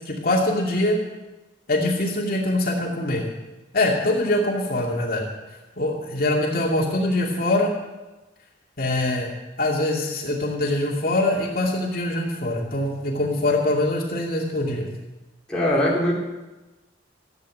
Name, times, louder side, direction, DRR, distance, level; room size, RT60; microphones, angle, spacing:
voice 1, 0.1-1.0 1.7-3.3 3.7-5.2 5.8-7.7 8.8-9.3 9.6-14.9, left 1 dB, 50° left, -2 dB, 2.5 m, -23 dB
voice 2, 15.5-16.1, left 1 dB, 5° left, -6 dB, 3.0 m, -21 dB
15.0 x 8.3 x 8.3 m, 1.1 s
head